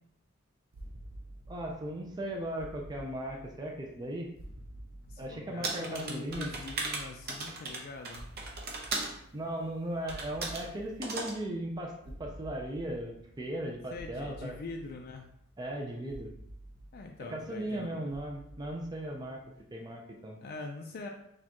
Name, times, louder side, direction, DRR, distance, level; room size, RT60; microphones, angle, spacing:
sound 1, 0.7-19.6, right 1 dB, 80° right, 0.6 m, -51 dB
voice 1, 1.5-4.3 5.2-6.5 9.3-14.6 15.6-16.3 17.3-19.4 19.7-20.4, right 1 dB, 20° right, 0 dB, 0.4 m, -37 dB
voice 2, 5.0-8.3 13.9-15.3 16.9-18.0 20.4-21.1, left 3 dB, 45° left, 2 dB, 0.4 m, -43 dB
sound 2, 5.6-9.2 10.1-10.7 11.0-11.4, right 3 dB, 50° right, 0.7 m, -37 dB
6.3 x 2.3 x 2.9 m, 0.74 s
head